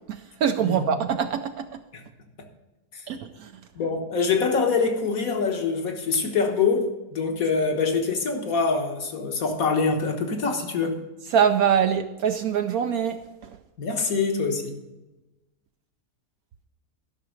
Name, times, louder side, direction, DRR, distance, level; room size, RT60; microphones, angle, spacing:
voice 1, 0.1-1.7 3.1-3.5 11.3-13.2, right 8 dB, 70° right, 7 dB, 1.0 m, -23 dB
voice 2, 3.8-11.0 13.8-14.8, left 4 dB, 60° left, 3 dB, 1.8 m, -25 dB
12.5 x 6.0 x 6.3 m, 1.1 s
omnidirectional pair, 1.7 m